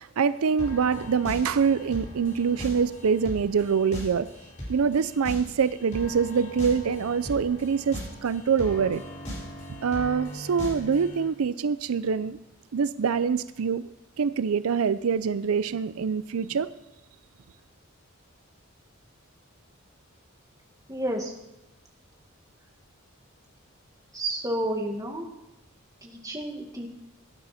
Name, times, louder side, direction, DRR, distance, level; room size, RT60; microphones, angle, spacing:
voice 1, 0.0-4.3 4.7-9.0 9.8-12.4 12.7-13.8 14.2-16.7, right 6 dB, 85° right, 15 dB, 0.5 m, -25 dB
sound 1, 0.6-11.3, equal, 35° left, 5.2 m, -39 dB
voice 2, 20.9-21.3 24.1-25.3 26.0-26.9, right 1 dB, 15° right, 1 dB, 1.8 m, -30 dB
18.0 x 9.6 x 4.2 m, 0.95 s
head